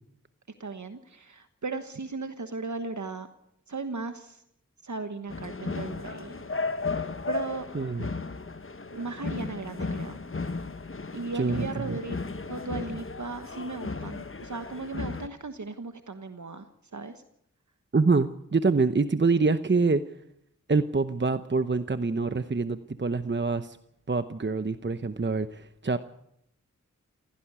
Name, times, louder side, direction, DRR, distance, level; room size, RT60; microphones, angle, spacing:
voice 1, 0.6-3.3 3.7-4.4 4.8-6.4 7.3-7.7 8.9-10.2 11.1-12.2 12.5-16.7 16.9-17.1, right 3 dB, 65° right, 9 dB, 1.3 m, -36 dB
sound 1, 5.3-15.3, left 4 dB, 40° left, 1.2 m, -35 dB
voice 2, 7.7-8.1 11.3-11.9 17.9-20.0 20.7-23.8 24.1-26.0, right 4 dB, 35° right, 11 dB, 0.9 m, -25 dB
16.5 x 16.0 x 9.6 m, 0.77 s
wide cardioid pair, 45°, 32 cm